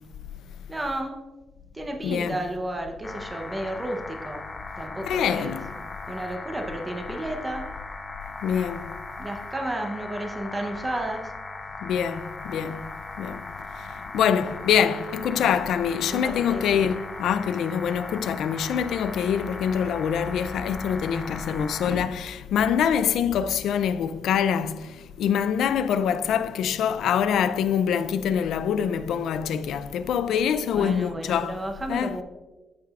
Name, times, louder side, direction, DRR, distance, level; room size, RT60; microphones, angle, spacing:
voice 1, 0.7-1.2 1.7-4.4 4.8-5.6 6.1-7.7 8.5-8.7 9.2-11.3 15.4-15.6 16.0-16.8 30.7-32.2, right 1 dB, 15° right, 0.7 m, -32 dB
voice 2, 2.0-2.4 5.0-5.7 8.4-8.9 11.8-12.9 13.2-13.4 13.8-31.6 31.9-32.2, left 8 dB, 80° left, 0.3 m, -25 dB
sound 1, 3.0-22.0, left 3 dB, 25° left, 0.6 m, -38 dB
13.0 x 4.7 x 2.4 m
cardioid pair, 145°, 0 cm